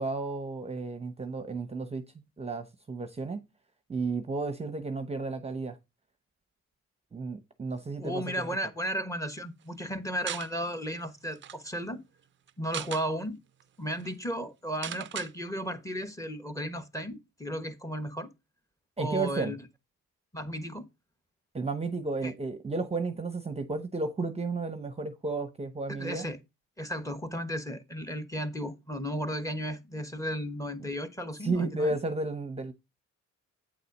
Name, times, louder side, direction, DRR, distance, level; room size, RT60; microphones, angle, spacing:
voice 1, 0.0-2.0 2.4-3.4 3.9-5.8 7.1-8.2 19.0-19.5 21.5-26.3 31.4-32.7, right 3 dB, 20° right, 0.8 m, -32 dB
voice 2, 8.0-12.0 12.6-13.4 13.8-18.3 19.0-19.6 20.3-20.9 22.2-22.3 25.9-26.4 26.8-32.0, equal, 10° left, 1.2 m, -34 dB
sound 1, 10.3-10.5 11.0-11.1 11.3-11.6 12.5-13.1 13.6-13.7 13.9-14.1 14.8-15.3, right 10 dB, 40° right, 0.4 m, -37 dB
8.6 x 4.1 x 5.3 m
cardioid pair, 90°, 30 cm